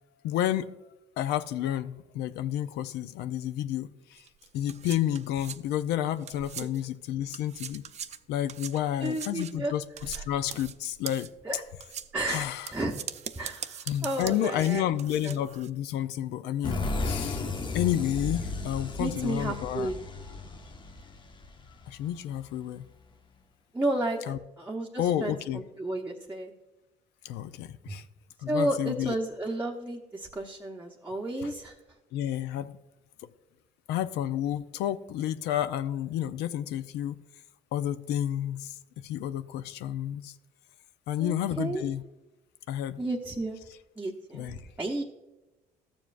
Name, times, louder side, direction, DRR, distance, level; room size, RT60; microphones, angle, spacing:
voice 1, 0.2-0.8 1.2-4.2 4.5-7.8 8.3-11.3 12.3-12.7 13.9-17.4 17.7-19.9 21.9-22.9 24.3-24.4 25.0-25.6 27.2-28.0 28.4-29.1 31.4-31.5 32.1-32.7 33.9-37.2 37.7-40.4 41.1-42.0 42.7-43.0 44.3-44.6, left 11 dB, 80° left, 0.4 m, -30 dB
sound 1, 4.2-7.0 7.3-15.7, right 8 dB, 40° right, 0.4 m, -42 dB
voice 2, 9.0-9.7 10.1-10.2 11.4-11.6 12.1-12.9 13.4-14.8 15.2-15.4 19.0-20.0 23.7-26.5 27.9-28.0 28.5-31.7 41.2-41.8 43.0-43.6 44.0-45.0, right 1 dB, 10° right, 0.8 m, -32 dB
sound 2, 16.6-22.2, left 3 dB, 30° left, 0.7 m, -34 dB
13.5 x 7.1 x 2.5 m
cardioid pair, 110°, 17 cm